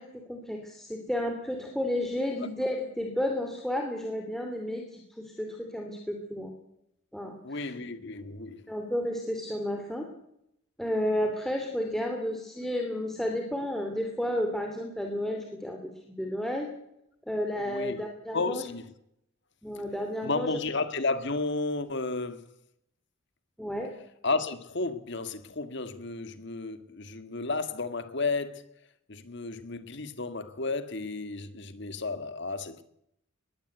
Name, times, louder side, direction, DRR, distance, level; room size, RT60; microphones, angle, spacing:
voice 1, 0.0-5.0 5.4-6.5 7.1-7.7 8.7-10.1 10.8-15.8 16.2-16.7 17.3-18.6 19.6-20.5 23.6-23.9, left 1 dB, ahead, 2.9 m, -32 dB
voice 2, 7.4-8.7 17.6-18.0 18.3-18.9 20.2-22.5 24.2-28.7 29.1-32.8, left 3 dB, 60° left, 1.9 m, -32 dB
21.0 x 16.0 x 8.2 m
head